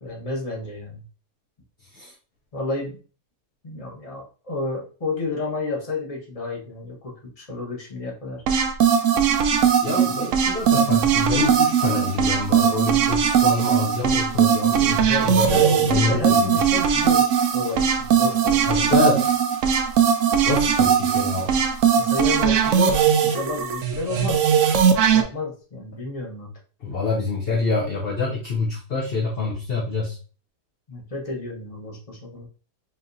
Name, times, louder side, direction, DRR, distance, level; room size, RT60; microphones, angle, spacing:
voice 1, 0.0-1.0 2.5-3.0 3.6-8.4 15.1-17.2 17.5-18.9 22.0-24.4 25.1-26.5 30.9-32.5, left 3 dB, 25° left, -1 dB, 0.9 m, -31 dB
sound 1, 8.5-25.2, right 8 dB, 70° right, 0.8 m, -19 dB
voice 2, 9.8-16.4 18.6-19.3 20.4-21.6 26.8-30.2, left 4 dB, 55° left, -2 dB, 0.7 m, -26 dB
5.4 x 2.8 x 2.5 m, 0.37 s
omnidirectional pair, 1.8 m